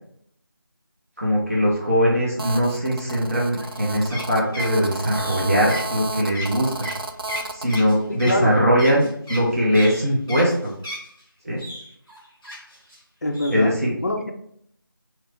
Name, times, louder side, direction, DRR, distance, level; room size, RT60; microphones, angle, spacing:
voice 1, 1.2-6.9 7.5-10.7 11.4-11.6 13.5-13.9, equal, 40° right, -4 dB, 0.7 m, -21 dB
Telephone, 2.4-7.8, right 3 dB, 85° right, 0.5 m, -32 dB
sound 1, 3.6-11.2 11.6-13.0 13.3-13.6, left 1 dB, 5° right, 1.3 m, -35 dB
voice 2, 8.1-8.6 13.2-13.7 14.0-14.3, left 1 dB, 45° left, 3 dB, 0.5 m, -24 dB
3.1 x 2.5 x 4.3 m, 0.69 s
figure-of-eight pair, 165°, 12 cm